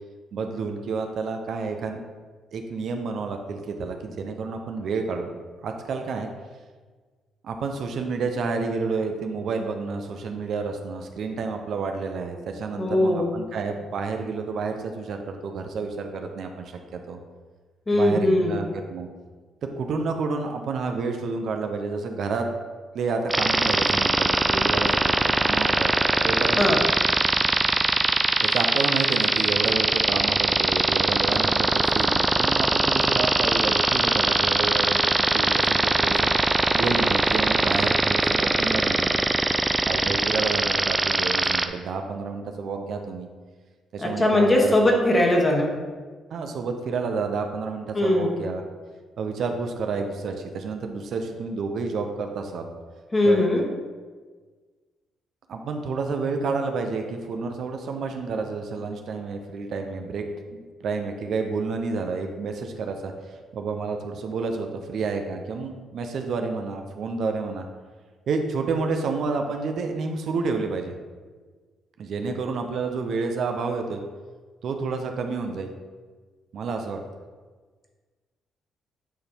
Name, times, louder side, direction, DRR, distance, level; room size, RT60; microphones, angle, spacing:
voice 1, 0.3-2.0 2.5-5.3 5.6-6.3 7.4-17.2 17.9-19.1 19.8-22.5 22.9-25.9 26.2-26.6 28.4-36.3 36.7-39.3 39.9-43.3 43.9-44.7 46.3-48.6 49.2-52.7 53.2-53.5 55.5-67.6 68.3-70.9 72.0-74.0 74.6-75.7 76.5-77.0, right 4 dB, 65° right, 4 dB, 0.7 m, -30 dB
voice 2, 12.8-13.3 17.9-18.6 26.6-26.8 44.0-45.7 47.9-48.3 53.1-53.7, left 1 dB, 25° left, 0 dB, 1.4 m, -20 dB
sound 1, 23.3-41.7, right 2 dB, 20° right, 0.5 m, -21 dB
9.3 x 3.4 x 4.5 m, 1.4 s
cardioid pair, 90°, 0 cm